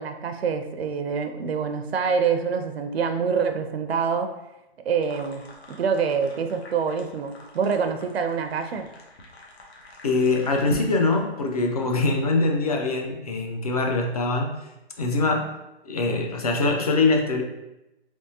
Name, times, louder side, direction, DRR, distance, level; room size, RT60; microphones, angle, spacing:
voice 1, 0.0-4.3 4.9-5.4 5.7-8.9, right 6 dB, 75° right, 7 dB, 0.5 m, -26 dB
sound 1, 5.0-11.5, equal, 75° left, 1.0 m, -43 dB
voice 2, 10.0-14.7 15.0-17.4, left 3 dB, 40° left, 2 dB, 0.4 m, -23 dB
3.5 x 3.1 x 2.7 m, 0.95 s
hypercardioid pair, 170°, 32 cm